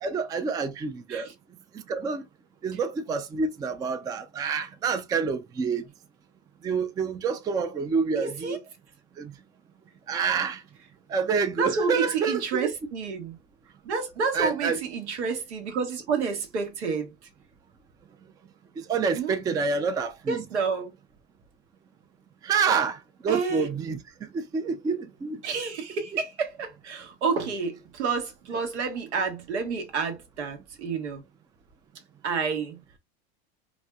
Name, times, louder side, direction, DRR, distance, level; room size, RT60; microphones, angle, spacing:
voice 1, 0.0-1.3 1.7-2.3 2.6-5.8 6.6-8.6 9.2-9.3 10.1-10.6 11.1-12.7 14.3-14.8 18.8-20.4 22.4-25.4, right 5 dB, 10° right, 0.3 m, -28 dB
voice 2, 8.2-8.6 11.6-13.4 13.8-17.1 19.1-19.3 20.3-20.9 23.3-23.7 25.4-31.2 32.2-32.8, right 5 dB, 90° right, 1.1 m, -29 dB
4.1 x 2.5 x 2.2 m
hypercardioid pair, 115°, 33 cm